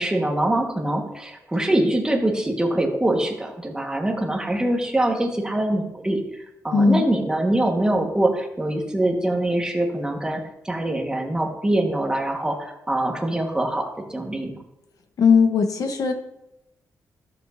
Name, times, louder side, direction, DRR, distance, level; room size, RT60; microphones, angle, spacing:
voice 1, 0.0-14.5, right 1 dB, 10° right, 2 dB, 1.5 m, -24 dB
voice 2, 6.7-7.0 15.2-16.1, left 5 dB, 70° left, 6 dB, 1.0 m, -18 dB
13.5 x 7.1 x 2.7 m, 0.89 s
cardioid pair, 115°, 6 cm